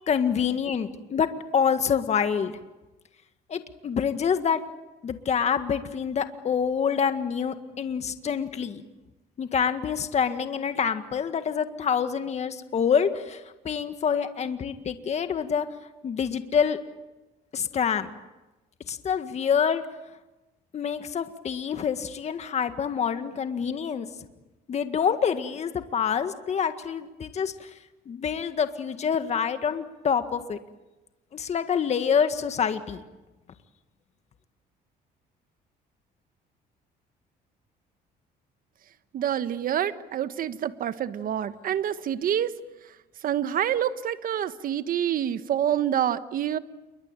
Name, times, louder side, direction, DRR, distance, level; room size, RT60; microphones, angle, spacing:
voice 1, 0.1-2.6 3.5-4.6 5.0-8.8 9.4-15.7 16.0-16.8 17.5-18.1 18.9-19.8 20.7-24.1 24.7-27.7 28.1-30.6 31.3-33.0, left 7 dB, 40° left, 9 dB, 1.8 m, -26 dB
voice 2, 39.1-42.5 43.2-46.6, right 10 dB, 55° right, 12 dB, 1.4 m, -27 dB
28.5 x 23.0 x 9.0 m, 1.1 s
cardioid pair, 110°, 17 cm